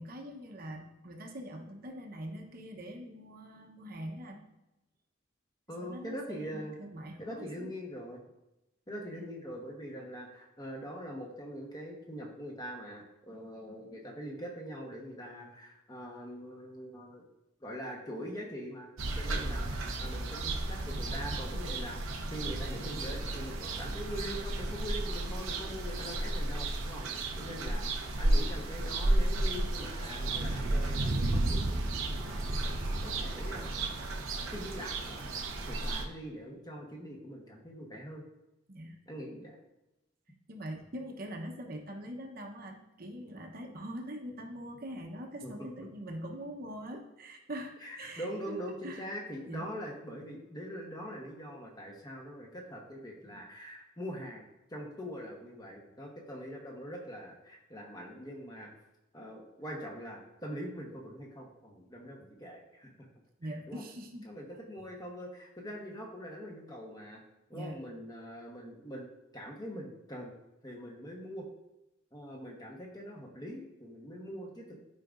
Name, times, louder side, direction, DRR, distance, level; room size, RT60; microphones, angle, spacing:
voice 1, 0.0-4.4 5.8-7.7 9.1-9.3 38.7-39.0 40.5-49.1 49.5-49.7 63.4-64.3 67.5-67.8, equal, 45° right, 1 dB, 0.9 m, -43 dB
voice 2, 5.7-6.8 7.2-8.2 8.9-17.2 17.6-18.9 19.2-27.0 27.4-31.9 32.3-32.5 33.0-34.0 34.4-38.2 39.1-39.6 45.4-45.9 47.8-58.7 59.1-62.9 63.4-63.8 64.2-67.2 67.5-69.1 69.3-70.3 70.6-71.5 72.1-74.8, equal, 20° left, -1 dB, 1.1 m, -43 dB
sound 1, 19.0-36.1, right 2 dB, 90° right, 0.9 m, -33 dB
12.0 x 5.0 x 2.5 m, 0.94 s
head